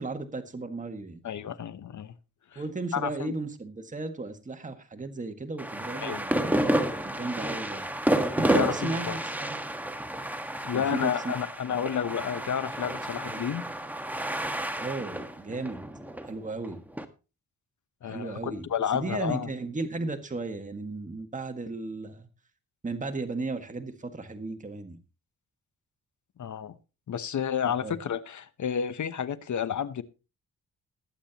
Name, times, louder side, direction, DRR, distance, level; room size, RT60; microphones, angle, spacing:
voice 1, 0.0-1.2 2.6-6.6 7.0-7.9 8.3-9.6 10.7-11.3 13.3-13.4 14.8-15.8 16.2-16.8 18.0-18.7 18.9-22.3 22.8-25.0 27.8-28.0, right 3 dB, 20° right, 1.8 m, -35 dB
voice 2, 1.2-2.1 2.5-2.6 2.9-3.3 6.0-6.2 8.4-9.2 10.6-13.6 18.0-19.5 26.4-26.7 27.1-30.0, left 8 dB, 60° left, 0.9 m, -31 dB
sound 1, 5.6-17.0, right 1 dB, 5° right, 1.5 m, -30 dB
20.5 x 8.7 x 2.9 m
cardioid pair, 85°, 34 cm